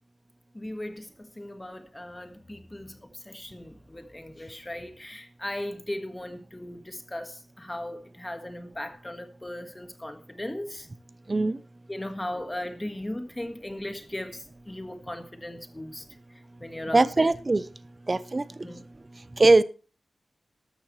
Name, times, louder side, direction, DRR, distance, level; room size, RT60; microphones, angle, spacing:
voice 1, 0.5-10.9 11.9-16.0 16.6-17.3 18.6-18.8, left 1 dB, 15° left, 1.6 m, -37 dB
voice 2, 11.3-11.6 16.9-17.7 18.1-18.7 19.3-19.6, right 2 dB, 30° right, 0.6 m, -21 dB
13.5 x 12.5 x 3.2 m
wide cardioid pair, 155°, 0 cm